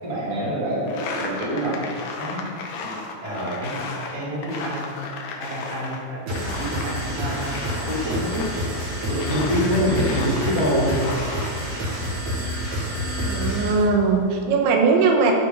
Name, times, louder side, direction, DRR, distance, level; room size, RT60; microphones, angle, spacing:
voice 1, 0.0-2.5 2.8-3.8 4.1-5.0 5.4-8.6 9.1-11.0, equal, 30° right, -7 dB, 1.8 m, -26 dB
sound 1, 0.9-6.0 6.3-11.5, left 3 dB, 80° left, 2.0 m, -34 dB
sound 2, 6.3-13.8, equal, 55° right, 2.1 m, -28 dB
voice 2, 13.2-15.3, right 4 dB, 90° right, 2 dB, 3.3 m, -20 dB
14.0 x 5.9 x 3.8 m, 2.4 s
omnidirectional pair, 5.2 m